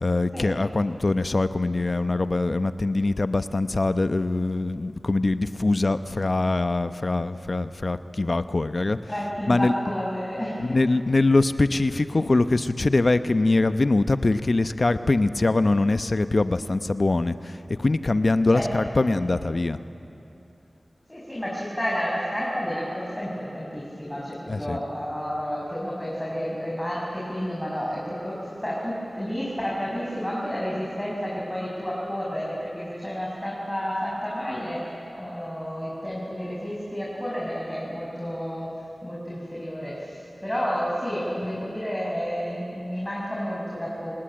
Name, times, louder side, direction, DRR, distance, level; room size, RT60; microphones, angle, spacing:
voice 1, 0.0-9.7 10.6-19.8 24.5-24.8, left 2 dB, 60° left, 11 dB, 0.8 m, -23 dB
voice 2, 9.1-10.5 18.5-19.0 21.1-34.8 35.1-38.7 39.0-44.1, equal, 15° left, -5 dB, 6.1 m, -30 dB
27.5 x 19.0 x 8.9 m, 2.9 s
cardioid pair, 40°, 0 cm